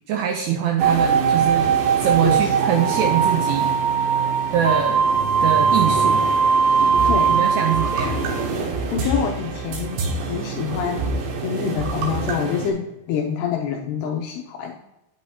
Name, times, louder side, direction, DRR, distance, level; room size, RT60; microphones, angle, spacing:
voice 1, 0.1-3.7 4.5-5.0 5.4-6.3 7.3-8.3, right 8 dB, 90° right, 3 dB, 2.4 m, -23 dB
sound 1, 0.8-12.7, right 5 dB, 75° right, 3.4 m, -21 dB
voice 2, 7.0-7.4 8.1-8.3 8.7-14.8, left 7 dB, 85° left, 2 dB, 2.4 m, -27 dB
9.1 x 8.5 x 2.8 m, 0.93 s
omnidirectional pair, 5.5 m